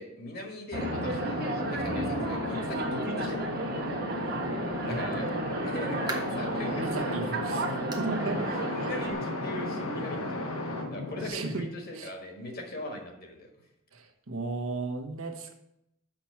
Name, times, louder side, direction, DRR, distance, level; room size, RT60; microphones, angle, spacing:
voice 1, 0.0-3.5 4.8-5.3 5.6-7.3 8.6-10.5 10.9-13.5, left 1 dB, 45° left, 2 dB, 1.6 m, -40 dB
sound 1, 0.7-11.3, left 1 dB, 80° left, 1.4 m, -35 dB
sound 2, 0.7-9.1, right 2 dB, 45° right, 1.1 m, -33 dB
sound 3, 6.1-6.5 7.0-7.1 7.9-8.2 8.5-8.6 9.1-9.2 10.3-10.4, right 3 dB, 20° right, 0.8 m, -40 dB
voice 2, 6.7-8.5 11.3-11.6 12.0-12.1 13.9-15.5, right 3 dB, 80° right, 2 dB, 1.2 m, -34 dB
6.0 x 6.0 x 5.9 m, 0.80 s
head